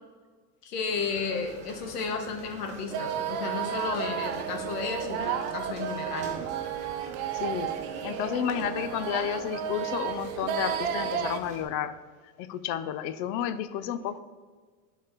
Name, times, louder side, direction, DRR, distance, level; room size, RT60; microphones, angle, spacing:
voice 1, 0.6-6.3, left 5 dB, 85° left, 4 dB, 1.3 m, -33 dB
sound 1, 0.9-11.6, right 1 dB, 15° right, 1.8 m, -45 dB
sound 2, 2.9-11.4, right 9 dB, 70° right, 0.8 m, -32 dB
voice 2, 7.3-7.8 8.0-12.0 12.4-14.2, left 10 dB, 45° left, 13 dB, 0.5 m, -31 dB
11.5 x 4.0 x 3.9 m, 1.5 s
supercardioid pair, 135°, 45 cm